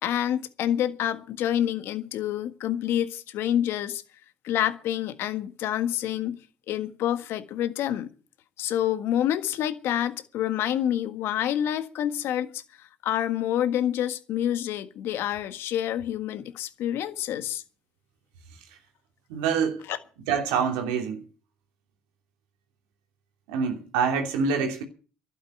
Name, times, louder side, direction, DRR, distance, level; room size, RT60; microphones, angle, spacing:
voice 1, 0.0-4.0 4.4-6.4 6.7-8.1 8.6-17.6 19.9-20.0, left 11 dB, 70° left, 1.6 m, -28 dB
voice 2, 19.3-19.8 20.3-21.2 23.5-24.8, right 6 dB, 90° right, 3.0 m, -26 dB
12.0 x 9.3 x 9.4 m
supercardioid pair, 65°, 4 cm